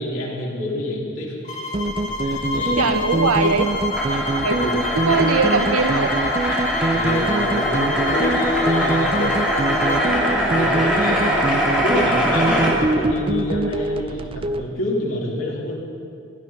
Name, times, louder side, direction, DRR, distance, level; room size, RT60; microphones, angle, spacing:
voice 1, 0.0-1.3 2.2-2.8 4.5-4.8 5.1-5.2 6.9-11.3 11.8-15.8, left 1 dB, 70° left, -4 dB, 3.3 m, -27 dB
sound 1, 1.4-10.1, left 3 dB, 35° left, 1.6 m, -29 dB
sound 2, 1.7-14.7, right 2 dB, 25° right, 0.4 m, -24 dB
voice 2, 2.8-3.7 4.4-4.6 5.1-6.1, right 4 dB, 90° right, 9 dB, 0.9 m, -20 dB
sound 3, 3.2-12.7, equal, 5° right, 2.8 m, -23 dB
16.0 x 11.5 x 5.9 m, 2.4 s
head